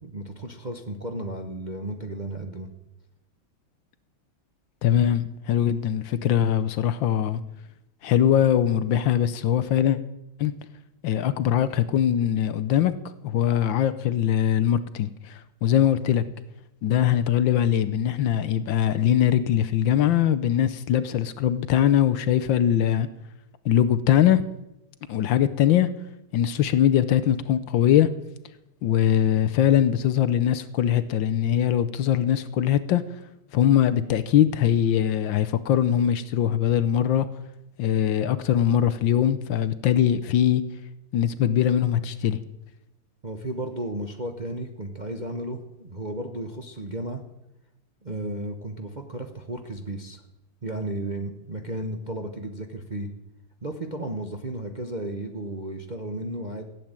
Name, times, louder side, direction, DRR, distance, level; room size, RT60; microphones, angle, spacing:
voice 1, 0.0-2.7 43.2-47.2 48.0-50.2 50.6-53.1 53.6-56.6, right 1 dB, 30° right, 4 dB, 0.9 m, -34 dB
voice 2, 4.8-7.4 8.0-10.0 10.4-10.5 11.0-12.9 13.2-16.2 16.8-23.1 23.6-24.4 25.1-25.9 26.3-28.1 28.8-33.0 33.5-37.3 37.8-40.6 41.1-42.4, left 10 dB, 70° left, 13 dB, 1.4 m, -21 dB
15.5 x 8.6 x 8.9 m, 0.89 s
omnidirectional pair, 2.3 m